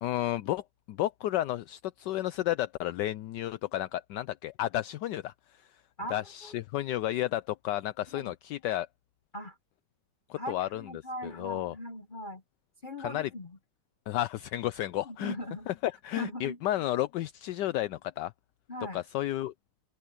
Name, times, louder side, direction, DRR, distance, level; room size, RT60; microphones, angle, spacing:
voice 1, 0.0-5.3 6.1-8.9 10.3-10.8 11.2-11.7 13.0-13.3 14.1-15.3 15.7-18.3 18.9-19.5, left 14 dB, 75° left, 1.0 m, -32 dB
voice 2, 6.0-6.6 8.1-8.3 9.3-9.6 10.4-12.4 12.8-13.6 15.0-15.7 16.1-16.6 18.7-19.0, left 1 dB, 50° left, 0.6 m, -40 dB
open air
omnidirectional pair, 2.3 m